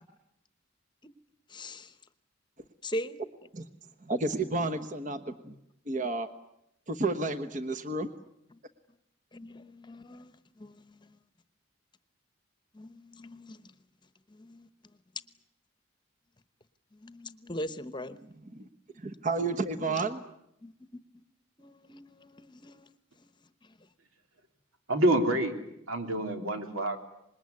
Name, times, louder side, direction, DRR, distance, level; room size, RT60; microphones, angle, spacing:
voice 1, 1.5-1.9 2.8-3.2 5.5-5.6 8.5-8.6 9.3-11.2 12.7-13.7 14.3-14.7 16.9-18.2 20.6-20.7 21.6-22.9 23.2-23.3 23.6-23.7, equal, 20° left, 12 dB, 1.0 m, -41 dB
voice 2, 4.0-5.5 5.9-6.3 6.9-8.1 18.5-18.6 19.0-20.2, right 3 dB, 40° right, 8 dB, 1.1 m, -31 dB
voice 3, 24.9-25.5 25.9-27.0, right 1 dB, 90° right, 5 dB, 3.4 m, -27 dB
26.0 x 21.0 x 9.6 m, 0.80 s
head